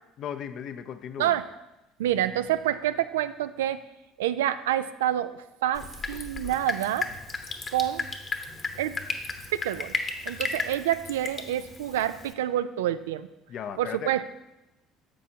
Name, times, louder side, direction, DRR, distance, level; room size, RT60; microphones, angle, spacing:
voice 1, 0.2-1.4 13.5-14.1, left 8 dB, 55° left, 9 dB, 0.6 m, -36 dB
voice 2, 2.0-3.8 4.2-5.3 5.6-7.1 7.7-8.1 8.8-9.0 9.5-9.9 10.2-13.3 13.8-14.2, right 12 dB, 80° right, 12 dB, 0.3 m, -27 dB
Drip, 5.7-12.3, left 4 dB, 35° left, 1.0 m, -35 dB
10.0 x 7.3 x 2.8 m, 0.98 s
hypercardioid pair, 60°, 0 cm